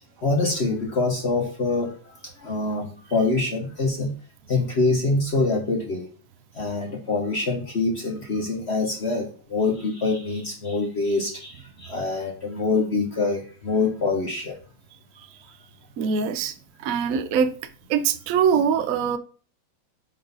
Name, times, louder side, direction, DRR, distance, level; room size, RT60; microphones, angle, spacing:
voice 1, 0.2-4.1 4.5-6.1 6.5-14.6, left 3 dB, 45° left, 1.0 m, -25 dB
voice 2, 16.0-16.5 16.8-17.5 17.9-19.2, right 7 dB, 70° right, 0.8 m, -22 dB
9.5 x 3.8 x 4.0 m
omnidirectional pair, 2.2 m